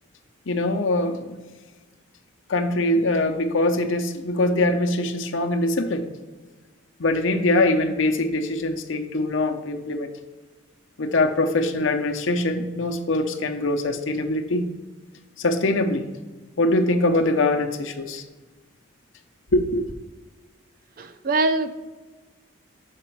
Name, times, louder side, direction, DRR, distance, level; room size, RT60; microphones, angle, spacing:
voice 1, 0.5-1.4 2.5-6.0 7.0-10.1 11.0-14.7 15.4-16.0 16.6-18.2 19.5-19.8, left 2 dB, 75° left, 6 dB, 0.7 m, -23 dB
voice 2, 21.0-21.7, right 3 dB, 45° right, 10 dB, 0.4 m, -23 dB
6.6 x 5.0 x 4.6 m, 1.2 s
head